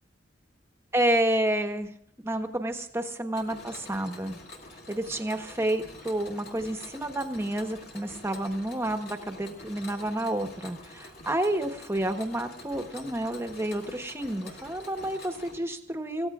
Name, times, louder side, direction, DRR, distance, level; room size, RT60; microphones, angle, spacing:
voice 1, 0.9-1.9 2.2-4.4 4.9-16.3, right 1 dB, 15° right, 6 dB, 1.1 m, -30 dB
Mechanisms, 3.3-15.6, left 2 dB, 55° left, 2.5 m, -47 dB
28.5 x 15.5 x 2.4 m, 0.66 s
head